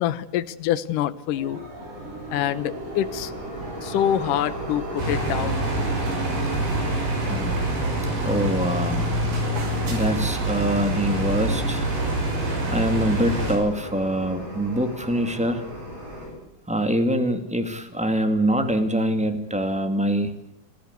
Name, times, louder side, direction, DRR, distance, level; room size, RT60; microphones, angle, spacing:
voice 1, 0.0-1.6 2.3-3.3 3.8-5.6, left 11 dB, 70° left, 13 dB, 2.4 m, -25 dB
sound 1, 1.3-16.3, equal, 50° right, 9.6 m, -36 dB
sound 2, 5.0-13.6, right 1 dB, 90° right, 8.2 m, -25 dB
voice 2, 7.3-7.7 8.2-9.1 9.9-11.9 12.7-15.6 16.7-20.3, right 1 dB, 5° right, 7 dB, 0.6 m, -24 dB
27.0 x 15.5 x 8.2 m, 0.88 s
omnidirectional pair, 4.5 m